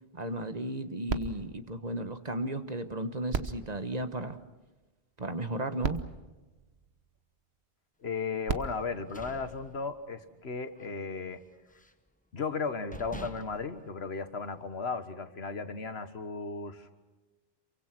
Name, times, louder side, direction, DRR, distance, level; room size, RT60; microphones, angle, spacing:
voice 1, 0.1-4.4 5.2-6.0, right 1 dB, 40° right, 9 dB, 1.4 m, -34 dB
sound 1, 1.1-2.7 3.3-4.9 5.5-5.6 5.8-7.4 8.2-10.0 10.8-10.9, right 5 dB, 90° right, 1.3 m, -39 dB
voice 2, 8.0-11.4 12.3-16.9, left 4 dB, 85° left, 10 dB, 1.7 m, -35 dB
sound 2, 8.8-10.4 10.7-11.0 11.3-12.1 12.5-12.6 12.9-14.7, equal, 10° left, 1.1 m, -48 dB
28.0 x 24.0 x 6.1 m, 1.2 s
omnidirectional pair, 1.0 m